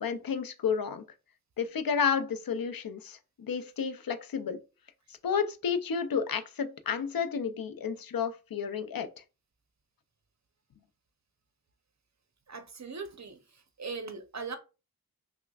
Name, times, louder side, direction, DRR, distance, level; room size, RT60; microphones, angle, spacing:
voice 1, 0.0-1.0 1.6-3.2 3.5-4.6 5.2-9.1, left 6 dB, 70° left, 0.6 m, -31 dB
voice 2, 12.5-13.4 13.8-14.6, right 4 dB, 50° right, 0.7 m, -39 dB
5.6 x 2.1 x 2.3 m
wide cardioid pair, 50°, 37 cm